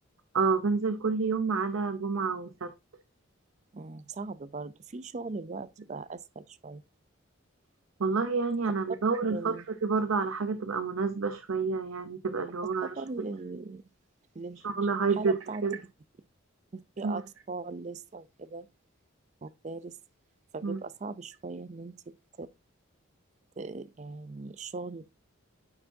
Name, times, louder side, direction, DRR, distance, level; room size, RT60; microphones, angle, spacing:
voice 1, 0.3-2.7 8.0-9.5 9.8-12.9 14.6-15.8 17.0-17.2 20.6-20.8, right 4 dB, 80° right, 0.6 m, -29 dB
voice 2, 3.7-6.8 9.3-9.6 12.8-13.8 14.3-14.6 15.1-15.6 16.7-17.2 17.5-18.7 19.4-20.0 20.5-22.0 22.4-22.5 23.6-25.1, right 3 dB, 35° right, 0.4 m, -39 dB
9.6 x 4.6 x 2.6 m
head